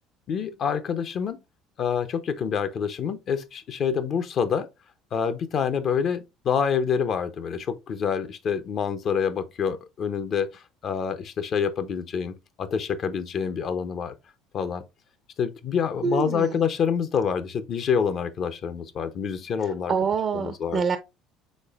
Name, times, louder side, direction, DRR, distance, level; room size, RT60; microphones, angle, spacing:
voice 1, 0.3-1.4 1.8-4.7 5.1-14.1 14.5-14.8 15.4-19.9 20.3-20.8, left 7 dB, 50° left, 0.6 m, -27 dB
voice 2, 16.0-16.6 19.6-21.0, right 6 dB, 45° right, 0.5 m, -26 dB
5.2 x 3.7 x 2.4 m
hypercardioid pair, 70°, 0 cm